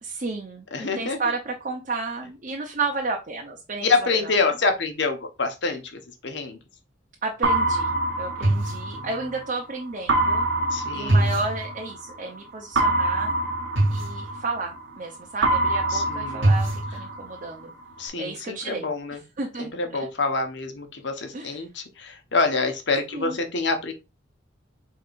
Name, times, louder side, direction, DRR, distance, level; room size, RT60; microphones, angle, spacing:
voice 1, 0.0-4.5 7.2-7.9 8.2-10.5 10.9-13.3 13.9-17.7 18.2-18.9 19.4-19.7 20.0-20.1 21.3-21.6 23.1-23.4, right 3 dB, 40° right, 1 dB, 0.7 m, -32 dB
voice 2, 0.7-1.2 3.8-6.6 8.9-9.1 10.7-11.3 15.9-16.5 18.0-19.2 19.6-23.9, left 4 dB, 65° left, 5 dB, 1.0 m, -26 dB
sound 1, 7.4-9.5 10.1-12.2 12.8-15.0 15.4-17.5, right 2 dB, 85° right, 1.1 m, -23 dB
4.6 x 3.7 x 2.5 m, 0.26 s
head